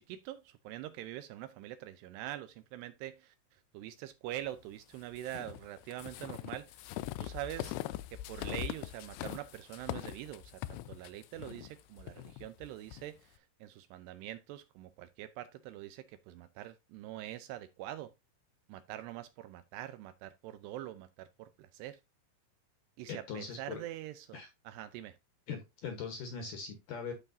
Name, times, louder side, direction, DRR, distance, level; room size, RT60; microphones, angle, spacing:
voice 1, 0.0-6.9 7.2-7.8 8.1-18.1 18.7-22.0 23.0-24.4 24.6-25.2, right 13 dB, 85° right, 2.5 m, -44 dB
sound 1, 5.1-13.0, left 15 dB, 90° left, 2.3 m, -42 dB
voice 2, 23.1-23.8 24.3-24.5 25.5-27.1, left 6 dB, 70° left, 2.1 m, -41 dB
13.0 x 4.5 x 2.6 m
omnidirectional pair, 5.2 m